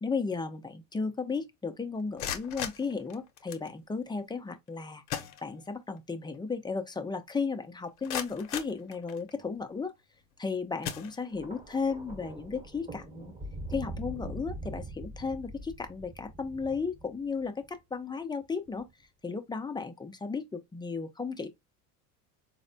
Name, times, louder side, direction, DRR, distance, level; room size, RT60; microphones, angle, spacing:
voice 1, 0.0-5.0 5.4-9.9 10.4-13.3 13.7-18.9 19.2-21.5, left 4 dB, 10° left, 0.5 m, -34 dB
sound 1, 2.0-3.7 4.7-4.8 5.1-6.0 6.3-6.4 7.0-7.1 7.6-9.5 10.1-10.4 10.8-11.6, left 9 dB, 70° left, 0.8 m, -39 dB
Thunder, 11.3-17.7 18.7-18.9, right 1 dB, 15° right, 1.0 m, -43 dB
4.0 x 2.2 x 2.6 m
hypercardioid pair, 85°, 41 cm